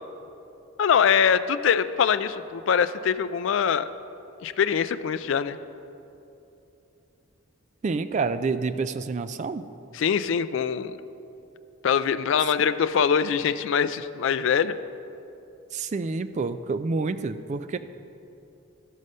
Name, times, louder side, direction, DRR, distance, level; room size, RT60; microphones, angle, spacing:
voice 1, 0.8-3.9 4.4-5.6 9.9-11.0 11.8-14.8, left 7 dB, 60° left, 13 dB, 0.3 m, -23 dB
voice 2, 7.8-9.6 15.7-17.8, right 4 dB, 35° right, 10 dB, 0.3 m, -28 dB
12.5 x 6.4 x 5.4 m, 2.9 s
head